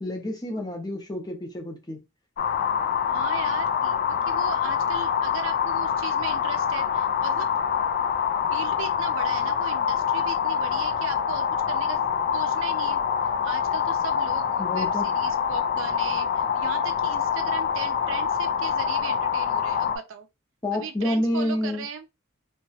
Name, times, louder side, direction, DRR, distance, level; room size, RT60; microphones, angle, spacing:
voice 1, 0.0-2.0 14.6-15.1 20.6-21.9, left 1 dB, 20° left, 0.7 m, -28 dB
sound 1, 2.4-20.0, left 7 dB, 45° left, 0.3 m, -25 dB
voice 2, 3.1-7.5 8.5-12.0 12.3-13.0 13.4-20.3 20.7-22.1, right 6 dB, 65° right, 0.5 m, -38 dB
2.9 x 2.2 x 2.7 m
head